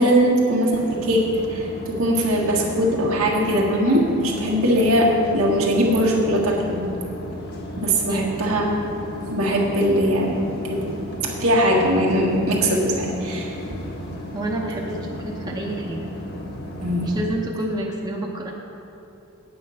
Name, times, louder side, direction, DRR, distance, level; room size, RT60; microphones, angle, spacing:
voice 1, 0.0-6.9 7.8-8.6 9.3-10.4 10.7-10.9 11.2-13.8 16.8-17.1, equal, 75° right, -3 dB, 1.7 m, -20 dB
sound 1, 0.7-17.3, left 1 dB, 50° left, 1.2 m, -34 dB
voice 2, 14.3-15.0 15.2-16.1 17.0-18.5, right 1 dB, 20° right, -2 dB, 0.8 m, -28 dB
8.8 x 8.6 x 5.6 m, 2.9 s
head